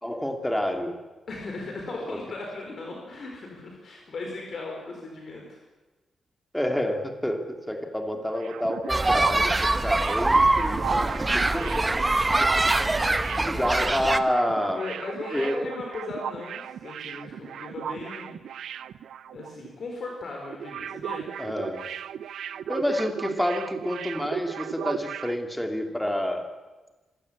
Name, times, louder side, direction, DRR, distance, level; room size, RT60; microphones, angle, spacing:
voice 1, 0.0-1.0 1.9-2.2 6.5-12.6 13.0-14.8 15.3-15.7 21.4-21.9 22.7-26.5, left 1 dB, 5° left, 4 dB, 2.6 m, -29 dB
voice 2, 1.3-5.6 9.2-9.4 14.8-18.3 19.3-21.3, left 3 dB, 45° left, 1 dB, 4.3 m, -37 dB
sound 1, 8.1-19.7 19.9-20.1 20.4-25.4, right 9 dB, 80° right, 0.7 m, -37 dB
sound 2, 8.9-14.2, right 2 dB, 15° right, 0.9 m, -23 dB
26.5 x 16.5 x 8.5 m, 1.2 s
wide cardioid pair, 160°, 0 cm